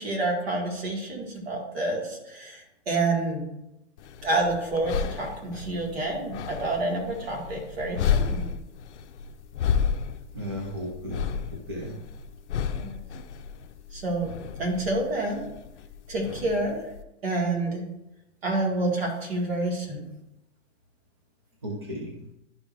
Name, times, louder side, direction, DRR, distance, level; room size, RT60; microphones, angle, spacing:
voice 1, 0.0-3.5 4.2-8.4 12.7-13.0 13.9-15.4 16.1-16.8 17.2-17.8 18.4-20.0, right 2 dB, 55° right, 0 dB, 2.2 m, -28 dB
sound 1, 4.0-17.0, left 7 dB, 65° left, 0.6 m, -32 dB
voice 2, 10.3-11.4 11.7-12.0 21.6-22.3, equal, 25° right, 0 dB, 0.3 m, -35 dB
11.0 x 5.2 x 2.6 m, 0.90 s
hypercardioid pair, 170°, 37 cm